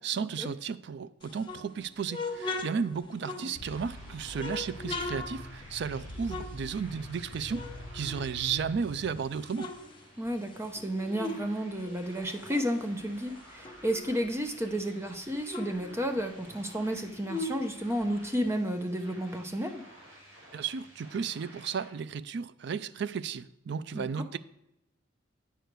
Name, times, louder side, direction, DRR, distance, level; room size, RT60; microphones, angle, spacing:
voice 1, 0.0-9.7 20.5-24.4, right 6 dB, 60° right, 0.4 m, -34 dB
sound 1, 1.2-3.9 4.3-7.2 7.5-8.8 9.2-11.5 11.8-14.3 14.7-14.8 15.0-18.5, left 2 dB, 25° left, 0.8 m, -40 dB
sound 2, 3.3-21.9, right 1 dB, 90° right, 3.9 m, -54 dB
sound 3, 3.5-9.2, left 1 dB, 85° left, 0.9 m, -45 dB
voice 2, 10.2-19.8 23.9-24.3, equal, 15° right, 0.7 m, -32 dB
9.1 x 6.6 x 4.6 m
head